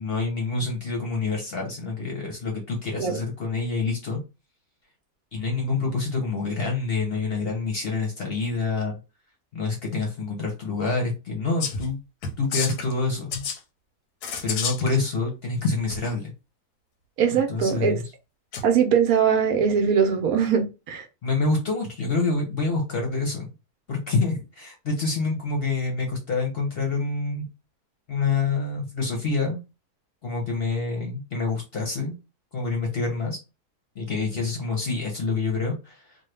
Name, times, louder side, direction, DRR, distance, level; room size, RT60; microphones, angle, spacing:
voice 1, 0.0-4.2 5.3-9.0 9.5-12.0 12.4-13.4 14.4-16.3 17.3-18.0 21.2-23.5 23.9-27.5 28.1-29.6 30.2-32.2 32.5-33.4 34.0-36.2, left 3 dB, 50° left, 0.8 m, -27 dB
sound 1, 11.6-11.9 12.2-12.9 13.3-13.6 14.2-14.9 15.9-16.0 18.5-18.7, left 5 dB, 85° left, 1.2 m, -30 dB
voice 2, 17.2-18.0 18.6-21.0, right 7 dB, 70° right, 1.1 m, -21 dB
3.1 x 2.2 x 3.2 m
omnidirectional pair, 1.7 m